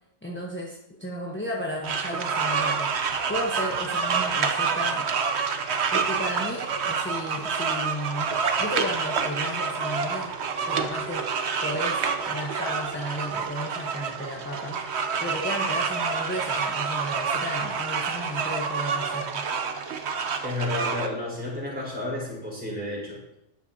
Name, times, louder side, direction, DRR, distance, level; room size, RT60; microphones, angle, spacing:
voice 1, 0.2-5.1 5.9-8.3 8.6-10.3 10.6-11.3 11.6-19.5, equal, 10° left, -1 dB, 1.0 m, -34 dB
sound 1, 1.8-21.1, right 5 dB, 60° right, 1.1 m, -28 dB
voice 2, 20.4-23.2, left 1 dB, 5° right, -5 dB, 4.2 m, -31 dB
12.5 x 10.0 x 2.8 m, 0.88 s
omnidirectional pair, 1.3 m